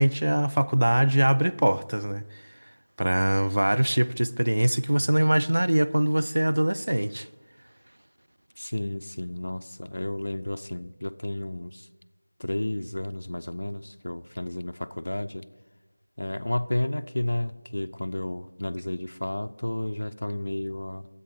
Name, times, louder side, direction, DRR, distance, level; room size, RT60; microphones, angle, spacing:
voice 1, 0.0-2.2 3.0-7.3, right 1 dB, 60° right, 0.4 m, -23 dB
voice 2, 8.6-11.9 12.4-15.5 16.2-21.1, left 1 dB, 50° left, 0.4 m, -32 dB
10.0 x 8.1 x 4.8 m
figure-of-eight pair, 175°, 0 cm